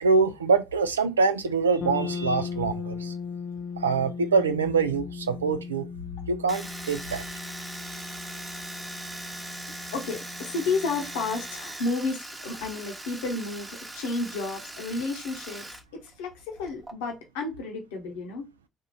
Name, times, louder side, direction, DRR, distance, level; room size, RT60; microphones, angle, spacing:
voice 1, 0.0-3.1 3.8-5.9 6.3-7.2, right 4 dB, 90° right, 0.3 m, -24 dB
sound 1, 1.8-11.6, left 6 dB, 50° left, 0.6 m, -38 dB
Domestic sounds home sounds, 6.5-15.8 16.1-16.9, right 1 dB, 20° right, 0.9 m, -40 dB
voice 2, 8.7-9.4 9.9-15.7 15.9-18.5, left 3 dB, 75° left, 0.9 m, -32 dB
3.6 x 2.5 x 4.1 m
hypercardioid pair, 50°, 0 cm